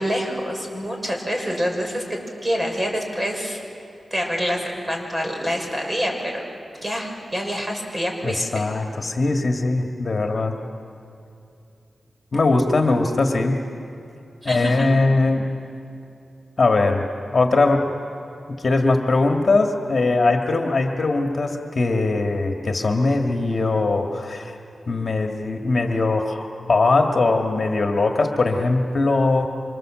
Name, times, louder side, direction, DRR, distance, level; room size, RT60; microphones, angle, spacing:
voice 1, 0.0-3.6 4.1-6.4 6.8-8.7 14.4-14.9, equal, 20° right, 2 dB, 5.8 m, -26 dB
voice 2, 8.2-10.6 12.3-13.6 14.5-15.5 16.6-17.0 17.3-17.9 18.5-24.6 24.9-29.5, left 3 dB, 50° left, 3 dB, 1.9 m, -20 dB
27.5 x 26.0 x 7.7 m, 2.6 s
cardioid pair, 75°, 0 cm